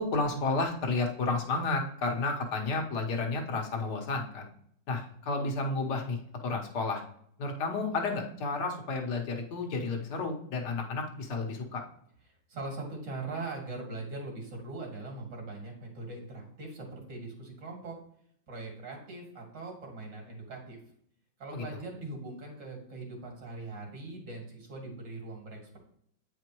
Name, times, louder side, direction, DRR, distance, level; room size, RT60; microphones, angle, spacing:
voice 1, 0.0-4.5 4.9-7.0 7.4-11.8 21.5-21.8, left 3 dB, 65° left, 3 dB, 1.7 m, -31 dB
voice 2, 12.3-18.0 18.5-20.8 21.4-25.8, right 3 dB, 75° right, 1 dB, 2.8 m, -41 dB
8.8 x 5.1 x 3.0 m, 0.67 s
omnidirectional pair, 2.0 m